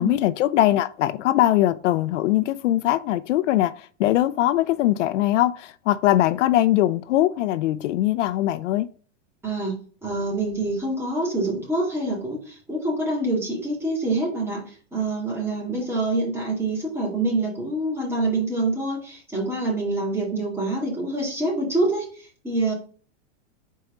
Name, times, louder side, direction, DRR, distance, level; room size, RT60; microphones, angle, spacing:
voice 1, 0.0-8.9, left 14 dB, 80° left, 0.5 m, -21 dB
voice 2, 9.4-9.8 10.0-22.7, right 2 dB, 5° right, 2.3 m, -26 dB
4.6 x 4.2 x 4.9 m
supercardioid pair, 140°, 36 cm